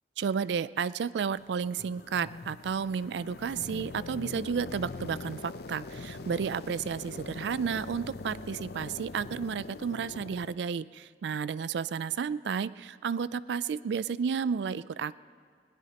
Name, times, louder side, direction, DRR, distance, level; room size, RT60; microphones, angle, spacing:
voice 1, 0.2-15.1, right 6 dB, 75° right, 18 dB, 0.3 m, -32 dB
sound 1, 1.3-10.5, left 3 dB, 60° left, 0.5 m, -43 dB
21.0 x 18.5 x 2.9 m, 2.1 s
head